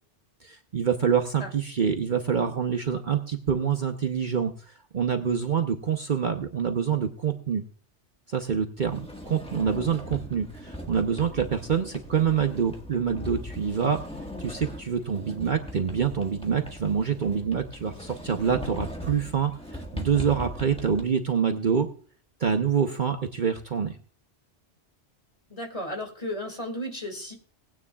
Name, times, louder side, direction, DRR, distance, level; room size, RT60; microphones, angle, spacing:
voice 1, 0.4-7.6 8.3-14.0 14.4-21.9 22.4-23.9, right 7 dB, 50° right, 6 dB, 0.9 m, -26 dB
Sliding door, 8.8-21.0, equal, 5° left, 1.4 m, -39 dB
voice 2, 25.5-27.4, left 1 dB, 30° left, 3 dB, 2.5 m, -34 dB
19.0 x 9.6 x 2.3 m, 0.43 s
omnidirectional pair, 1.2 m